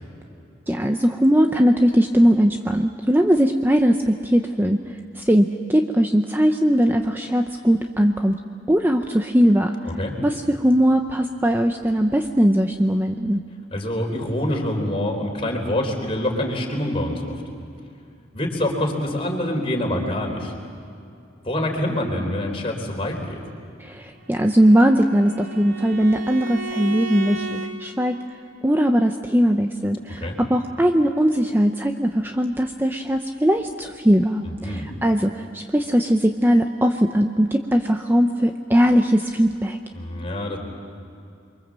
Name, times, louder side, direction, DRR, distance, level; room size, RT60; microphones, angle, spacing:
voice 1, 0.7-4.8 5.2-8.3 8.7-9.8 10.2-13.4 23.8-28.1 28.6-39.8, equal, 10° right, 4 dB, 0.7 m, -19 dB
voice 2, 13.7-17.4 18.3-20.5 21.4-23.4 30.2-30.4 34.4-34.9 39.9-40.6, left 1 dB, 30° left, 1 dB, 4.0 m, -26 dB
Bowed string instrument, 24.2-27.7, right 2 dB, 75° right, 2.6 m, -34 dB
29.5 x 23.5 x 7.5 m, 2.5 s
head